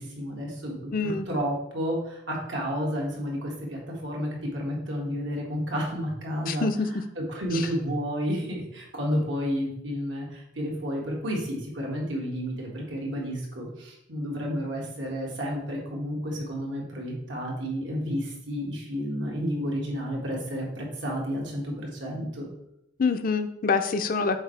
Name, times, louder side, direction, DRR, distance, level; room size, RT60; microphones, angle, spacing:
voice 1, 0.0-22.5, equal, 80° right, -2 dB, 1.9 m, -31 dB
voice 2, 0.9-1.3 6.5-6.7 23.0-24.4, left 4 dB, 50° left, 9 dB, 0.5 m, -25 dB
7.3 x 4.4 x 3.3 m, 0.78 s
head